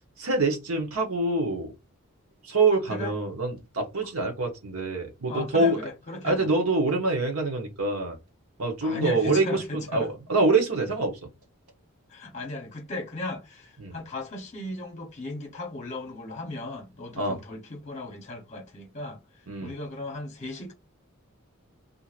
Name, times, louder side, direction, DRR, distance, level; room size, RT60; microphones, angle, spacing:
voice 1, 0.2-1.7 2.4-5.8 6.2-8.2 8.6-11.2 13.8-13.9 17.2-17.4 19.5-19.7, right 3 dB, 75° right, 1.0 m, -25 dB
voice 2, 5.3-6.5 8.8-10.1 12.1-19.2 19.6-20.7, left 2 dB, 30° left, 0.9 m, -36 dB
4.3 x 2.7 x 2.5 m
head